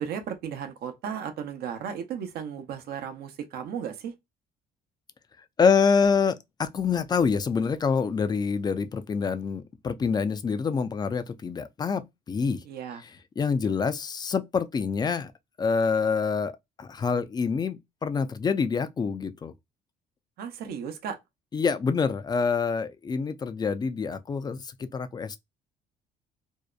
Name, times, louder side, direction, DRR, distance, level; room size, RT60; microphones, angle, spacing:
voice 1, 0.0-4.1 12.6-13.0 20.4-21.2, right 8 dB, 70° right, 0.7 m, -35 dB
voice 2, 5.6-12.6 13.4-15.3 15.6-16.5 16.8-19.5 21.5-25.4, left 5 dB, 25° left, 0.4 m, -26 dB
2.7 x 2.1 x 2.3 m
cardioid pair, 110°, 17 cm